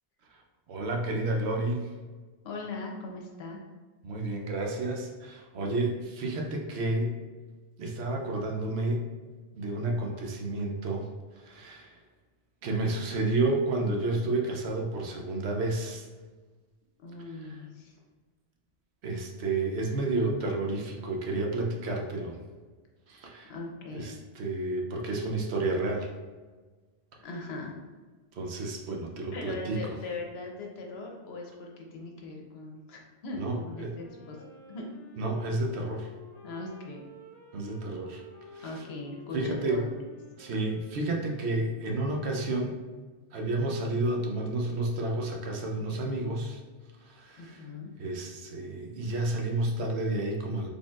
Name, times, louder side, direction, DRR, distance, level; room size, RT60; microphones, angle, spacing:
voice 1, 0.7-1.9 4.0-7.1 7.8-9.1 9.5-11.0 11.4-11.9 12.6-16.1 17.5-17.6 19.0-22.4 23.1-23.5 23.9-26.1 28.4-29.8 33.4-33.9 35.2-36.1 37.5-38.2 38.5-38.8 39.3-39.9 40.4-42.8 43.3-46.6 47.0-47.6 48.0-50.7, right 2 dB, 75° right, 1 dB, 0.9 m, -31 dB
voice 2, 2.4-3.6 17.0-18.0 23.5-24.1 27.2-27.7 29.3-34.9 36.4-37.0 38.6-39.9 47.4-47.9, left 2 dB, 70° left, 0 dB, 0.9 m, -40 dB
Wind instrument woodwind instrument, 33.8-42.1, left 1 dB, 45° left, 0.7 m, -52 dB
4.0 x 3.4 x 2.3 m, 1.3 s
omnidirectional pair, 1.1 m